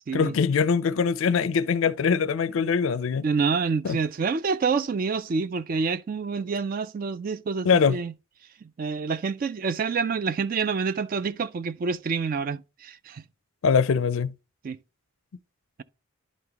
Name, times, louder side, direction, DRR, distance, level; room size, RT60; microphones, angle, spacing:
voice 1, 0.1-3.2 3.8-4.0 7.7-8.0 13.6-14.3, left 6 dB, 70° left, 0.4 m, -22 dB
voice 2, 3.2-8.1 8.6-13.2 14.6-14.8, right 5 dB, 40° right, 0.3 m, -27 dB
11.0 x 3.9 x 2.9 m
head